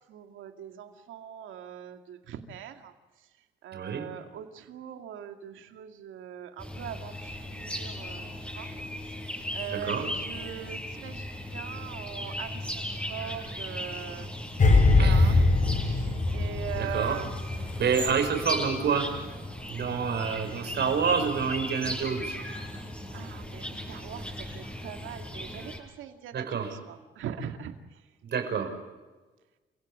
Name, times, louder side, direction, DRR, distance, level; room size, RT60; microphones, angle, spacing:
voice 1, 0.1-2.9 3.6-8.7 9.5-14.3 15.0-15.4 15.8-18.1 23.1-27.8, right 9 dB, 80° right, 6 dB, 2.3 m, -41 dB
voice 2, 3.7-4.1 9.7-10.1 15.0-15.4 16.8-17.2 17.8-19.1 19.7-22.3 26.3-26.7 28.2-28.7, right 6 dB, 60° right, 6 dB, 5.8 m, -28 dB
sound 1, 6.6-25.8, left 1 dB, 5° left, 6.9 m, -37 dB
sound 2, 14.6-17.8 18.0-18.3, left 3 dB, 40° left, 5.2 m, -22 dB
28.5 x 17.0 x 8.7 m, 1.2 s
cardioid pair, 90°, 20 cm